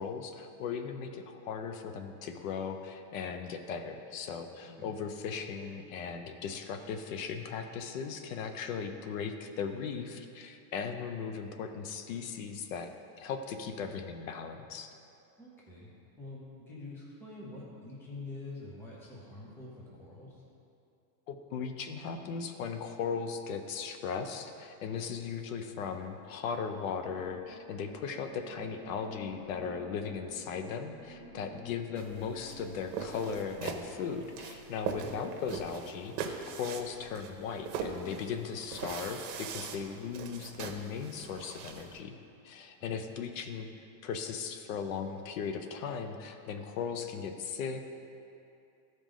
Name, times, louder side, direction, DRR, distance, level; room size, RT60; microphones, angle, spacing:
voice 1, 0.0-12.9 13.2-14.9 21.3-42.2 42.4-43.7 44.0-47.8, left 6 dB, 55° left, 7 dB, 0.7 m, -37 dB
voice 2, 15.4-15.9 16.2-20.4 35.0-35.2 42.8-43.1, left 2 dB, 5° left, -5 dB, 0.6 m, -46 dB
sound 1, 26.8-34.8, equal, 20° right, 2.0 m, -51 dB
sound 2, 32.0-42.0, right 6 dB, 75° right, 1.1 m, -41 dB
14.5 x 5.2 x 3.8 m, 2.6 s
supercardioid pair, 175°, 47 cm